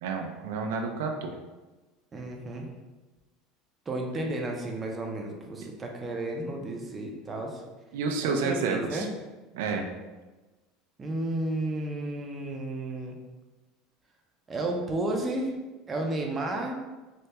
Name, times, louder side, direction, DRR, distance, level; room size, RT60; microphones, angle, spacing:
voice 1, 0.0-1.3 7.9-9.1 9.5-9.9, right 4 dB, 85° right, 3 dB, 0.4 m, -30 dB
voice 2, 2.1-2.7 3.9-7.6 8.2-9.1 11.0-13.2 14.5-15.5 15.9-16.8, right 2 dB, 20° right, 1 dB, 0.4 m, -32 dB
3.3 x 2.1 x 2.8 m, 1.2 s
supercardioid pair, 135°, 0 cm